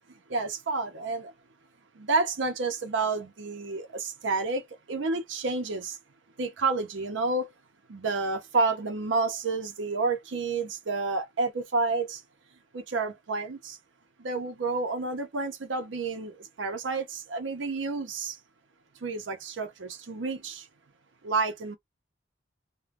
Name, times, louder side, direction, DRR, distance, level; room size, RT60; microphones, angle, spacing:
voice 1, 0.3-1.3 2.0-6.0 6.4-7.5 7.9-12.2 12.7-13.8 14.2-18.4 19.0-20.7 21.2-21.8, right 3 dB, 80° right, 0.6 m, -30 dB
2.5 x 2.2 x 3.1 m
head